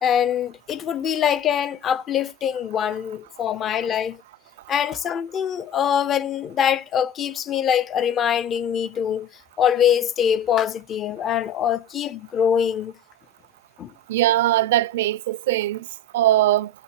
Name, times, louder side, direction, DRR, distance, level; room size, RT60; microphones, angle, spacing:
voice 1, 0.0-4.2 4.7-9.3 9.6-12.9 13.8-13.9, left 9 dB, 30° left, 0.5 m, -23 dB
voice 2, 14.1-15.8 16.1-16.7, right 14 dB, 75° right, 0.4 m, -20 dB
8.1 x 3.1 x 6.0 m
supercardioid pair, 140°, 0 cm